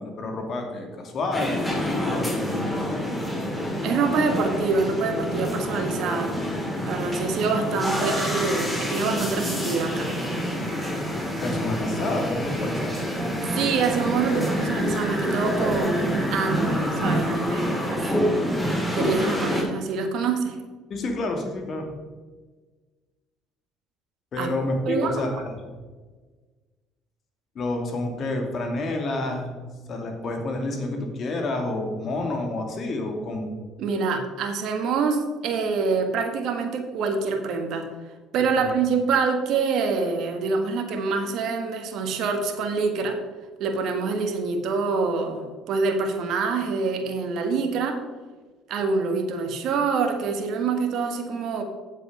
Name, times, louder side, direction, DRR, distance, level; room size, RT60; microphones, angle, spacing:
voice 1, 0.0-3.2 11.4-13.0 18.2-18.8 20.9-21.9 24.3-25.5 27.5-29.6 29.9-33.5 38.5-38.7, left 2 dB, 50° left, 3 dB, 2.3 m, -29 dB
sound 1, 1.3-19.6, equal, 10° left, 3.0 m, -27 dB
voice 2, 3.8-6.4 6.8-10.1 13.5-18.1 18.9-20.6 24.4-24.5 24.9-25.2 33.8-37.9 38.3-43.2 43.6-48.0 48.7-51.6, right 4 dB, 65° right, 5 dB, 1.4 m, -26 dB
7.9 x 7.3 x 5.3 m, 1.4 s
supercardioid pair, 75°, 0 cm